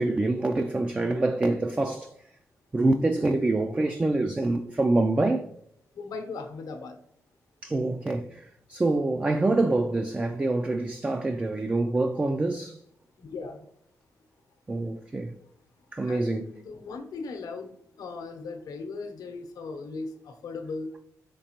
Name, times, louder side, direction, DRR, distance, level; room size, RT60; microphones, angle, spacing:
voice 1, 0.0-2.1 2.7-5.5 7.6-12.8 14.7-15.4 15.9-16.5, right 2 dB, 20° right, 0.3 m, -26 dB
voice 2, 5.9-7.0 13.2-13.7 16.0-20.9, left 4 dB, 80° left, 0.8 m, -38 dB
5.2 x 3.5 x 2.9 m
cardioid pair, 95°, 6 cm